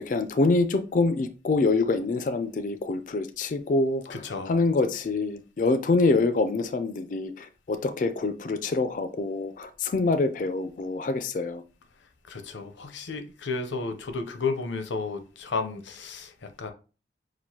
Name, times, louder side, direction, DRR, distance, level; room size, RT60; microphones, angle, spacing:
voice 1, 0.0-11.6, left 3 dB, 45° left, 0.3 m, -26 dB
voice 2, 4.1-4.5 12.3-16.7, left 4 dB, 85° left, 0.6 m, -33 dB
6.0 x 2.5 x 2.8 m
head